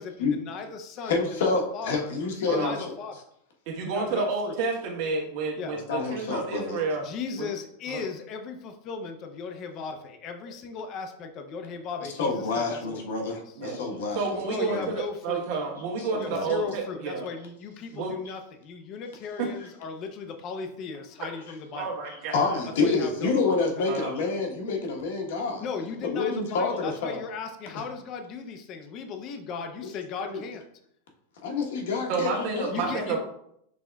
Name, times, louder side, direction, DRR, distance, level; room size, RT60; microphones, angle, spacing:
voice 1, 0.0-2.1 2.4-3.2 3.9-4.5 5.6-5.8 7.0-13.0 13.3-13.5 14.4-15.4 16.2-21.9 22.8-24.0 25.6-30.6 32.7-33.2, left 5 dB, 30° left, 5 dB, 0.5 m, -37 dB
voice 2, 1.0-2.7 5.9-6.8 12.2-14.9 16.0-16.5 22.3-25.6 26.0-27.2 29.8-29.9 30.2-30.4 31.4-33.2, left 4 dB, 70° left, 1 dB, 1.1 m, -28 dB
voice 3, 3.7-7.1 7.4-7.5 7.9-8.0 13.6-13.8 14.1-17.2 17.9-18.1 19.4-19.5 21.7-22.6 23.9-24.1 32.1-33.2, right 4 dB, 45° right, 0 dB, 1.2 m, -30 dB
6.2 x 3.5 x 2.3 m, 0.73 s
supercardioid pair, 170°, 0 cm